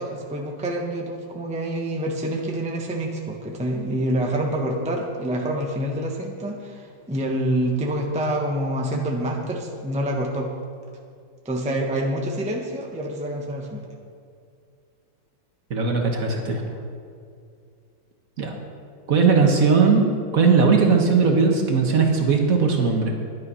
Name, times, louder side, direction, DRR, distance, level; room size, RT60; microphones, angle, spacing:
voice 1, 0.0-10.5 11.4-13.9, right 1 dB, 5° right, 0 dB, 0.8 m, -27 dB
voice 2, 15.7-16.6 18.4-18.5 19.1-20.0 20.3-23.1, right 5 dB, 50° right, 2 dB, 1.5 m, -18 dB
11.0 x 9.5 x 5.5 m, 2.3 s
omnidirectional pair, 2.1 m